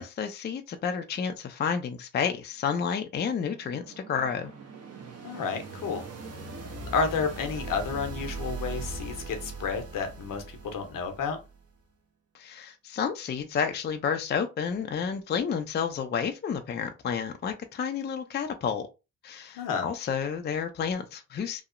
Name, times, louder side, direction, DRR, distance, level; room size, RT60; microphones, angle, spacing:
voice 1, 0.0-4.5 12.3-18.9 19.2-21.6, left 7 dB, 30° left, 0.4 m, -30 dB
sound 1, 3.0-11.7, right 3 dB, 45° right, 0.7 m, -40 dB
voice 2, 5.2-6.0 6.9-11.4 19.6-19.9, left 5 dB, 70° left, 0.7 m, -31 dB
2.8 x 2.0 x 2.4 m
cardioid pair, 75°, 35 cm